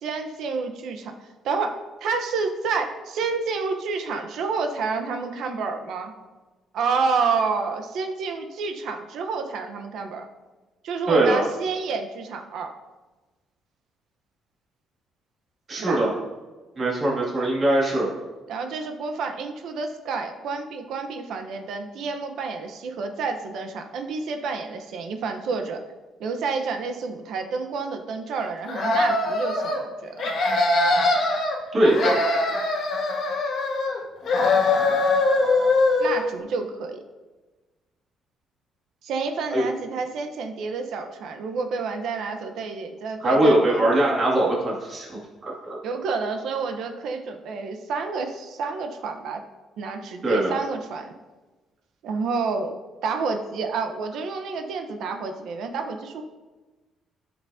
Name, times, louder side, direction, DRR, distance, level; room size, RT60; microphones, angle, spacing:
voice 1, 0.0-1.1 1.4-6.1 6.7-10.3 10.8-12.7 15.8-16.0 18.5-25.8 26.2-30.3 36.0-37.0 39.0-43.9 45.8-49.4 49.8-51.1 52.0-56.2, right 4 dB, 70° right, 6 dB, 0.9 m, -29 dB
voice 2, 11.1-11.4 15.7-16.1 16.8-18.1 31.7-32.2 39.5-39.6 43.2-45.1 45.4-45.8 50.2-50.5, right 1 dB, 30° right, -4 dB, 2.3 m, -21 dB
sound 1, 28.7-29.8 30.2-31.5 31.8-34.0 34.3-36.3, left 2 dB, 55° left, 1.9 m, -22 dB
13.0 x 5.9 x 2.8 m, 1.2 s
cardioid pair, 140°, 0 cm